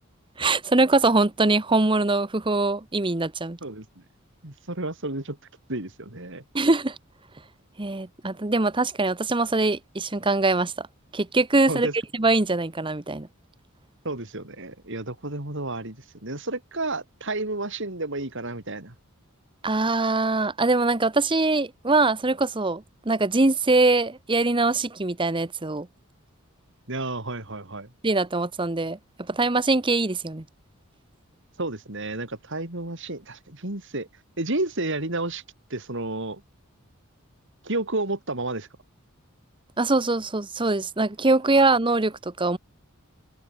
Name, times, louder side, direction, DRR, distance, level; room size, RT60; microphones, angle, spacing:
voice 1, 0.4-3.6 6.5-7.0 7.8-10.9 11.1-11.9 12.1-13.3 19.6-25.9 28.0-29.0 29.3-30.4 39.8-42.6, right 2 dB, 25° right, 1.0 m, -23 dB
voice 2, 3.6-4.0 4.4-5.4 5.7-6.4 11.7-11.9 14.0-18.9 26.9-27.9 31.6-34.1 34.4-35.4 35.7-36.4 37.6-38.7, right 2 dB, 60° right, 3.7 m, -31 dB
head